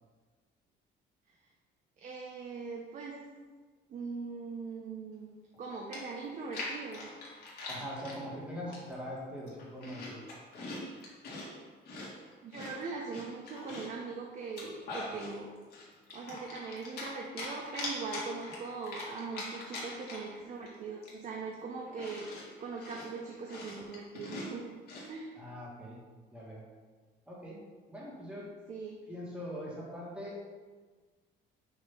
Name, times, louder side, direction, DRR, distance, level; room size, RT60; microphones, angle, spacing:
voice 1, 2.0-3.2 3.9-5.3 5.6-7.1 8.7-8.8 12.4-15.5 16.1-24.7 25.1-25.4 28.7-29.0, right 4 dB, 40° right, -1 dB, 0.7 m, -41 dB
Chewing mastication, 5.5-5.6 5.9-8.2 8.7-9.1 9.4-11.5 11.9-14.0 14.4-15.3 15.7-17.1 17.4-20.4 20.7-20.8 21.0-25.1, left 2 dB, 55° left, 1.8 m, -42 dB
voice 2, 7.7-10.2 25.3-26.0 26.3-26.6 27.3-27.6 27.9-28.5 29.1-30.4, equal, 5° right, -5 dB, 1.6 m, -42 dB
6.6 x 2.9 x 5.8 m, 1.4 s
cardioid pair, 145°, 19 cm